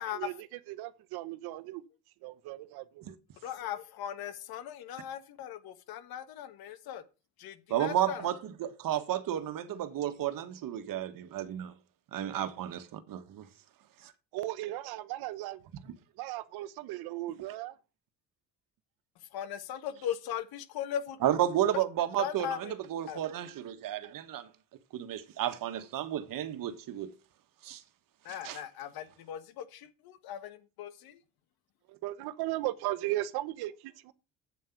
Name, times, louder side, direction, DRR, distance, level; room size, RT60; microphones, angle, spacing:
voice 1, 0.0-1.8 2.2-3.0 14.3-15.6 16.2-17.8 31.9-34.1, right 16 dB, 80° right, 1.0 m, -36 dB
voice 2, 3.4-7.0 7.4-8.3 19.3-21.2 22.2-22.7 23.1-23.2 28.2-31.2, left 10 dB, 70° left, 1.5 m, -39 dB
voice 3, 7.7-11.7 12.1-13.5 14.0-14.1 21.2-24.5 24.9-27.1 27.6-27.8 28.3-28.6, right 11 dB, 60° right, 1.5 m, -32 dB
8.4 x 7.6 x 6.0 m
supercardioid pair, 85°, 37 cm